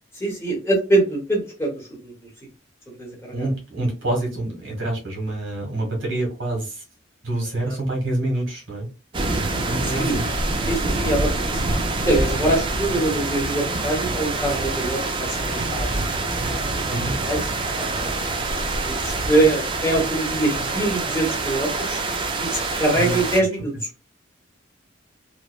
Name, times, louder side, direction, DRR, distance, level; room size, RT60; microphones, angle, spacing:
voice 1, 0.2-2.1 3.0-3.5 7.6-7.8 9.9-10.2 10.7-11.6 12.0-15.9 16.8-17.0 17.2-17.4 17.8-18.2 18.8-22.0 22.4-23.7, right 2 dB, 10° left, -3 dB, 0.9 m, -23 dB
voice 2, 3.3-6.8 7.2-8.9 9.6-10.2 16.9-17.2 23.0-23.2, right 1 dB, 80° right, 0 dB, 1.5 m, -26 dB
sound 1, 9.1-23.4, right 2 dB, 25° right, 0.3 m, -26 dB
2.9 x 2.1 x 2.3 m, 0.33 s
head